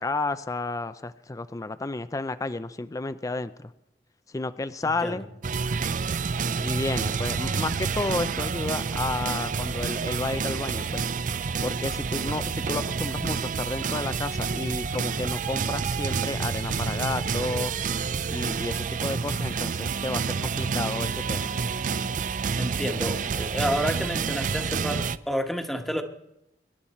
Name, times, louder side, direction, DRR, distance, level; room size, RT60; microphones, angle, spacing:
voice 1, 0.0-3.7 4.3-5.3 6.6-11.0 11.6-17.7 18.3-21.4, left 2 dB, 20° left, 12 dB, 0.4 m, -31 dB
sound 1, 5.4-25.2, right 5 dB, 45° right, 0.5 m, -29 dB
voice 2, 22.6-26.0, equal, ahead, 5 dB, 1.3 m, -30 dB
24.5 x 11.5 x 4.4 m, 0.84 s
head